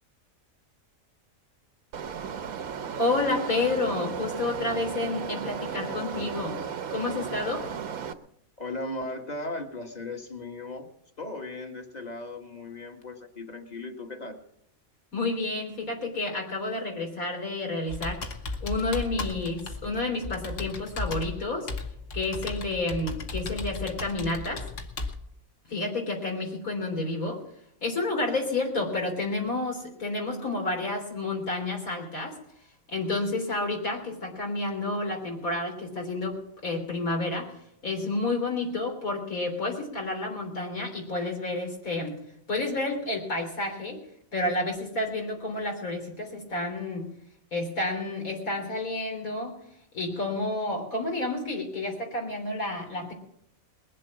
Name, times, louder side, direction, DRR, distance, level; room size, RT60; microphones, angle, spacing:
sound 1, 1.9-8.1, right 7 dB, 85° right, 1.4 m, -35 dB
voice 1, 3.0-6.6 6.9-7.7 15.1-18.3 18.6-21.7 22.1-24.7 25.7-27.4 27.8-32.4 32.9-42.2 42.5-44.0 44.3-47.1 47.5-49.6 49.9-53.1, left 2 dB, 75° left, 1 dB, 3.9 m, -30 dB
voice 2, 8.6-10.9 11.2-14.4, left 2 dB, 30° left, 4 dB, 1.8 m, -37 dB
Computer keyboard, 17.9-25.1, left 3 dB, 60° left, 1.7 m, -35 dB
21.0 x 7.6 x 7.4 m, 0.75 s
omnidirectional pair, 1.5 m